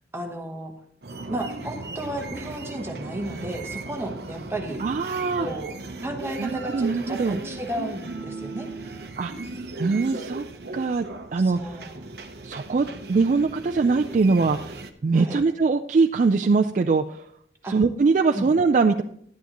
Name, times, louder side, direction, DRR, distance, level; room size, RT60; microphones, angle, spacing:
voice 1, 0.1-0.7 1.3-4.8 5.4-5.7 6.0-8.9 11.4-12.0 15.1-15.4 17.6-17.7 18.3-18.5, right 1 dB, 15° right, 2 dB, 1.1 m, -33 dB
sound 1, 1.0-14.9, right 2 dB, 60° right, 0.7 m, -37 dB
voice 2, 4.8-5.5 6.4-7.4 9.2-9.3 9.8-10.4 10.7-11.1 11.3-11.8 12.4-14.8 15.0-17.3 17.7-19.0, right 4 dB, 40° right, 4 dB, 0.3 m, -22 dB
11.5 x 9.4 x 3.0 m, 0.67 s
head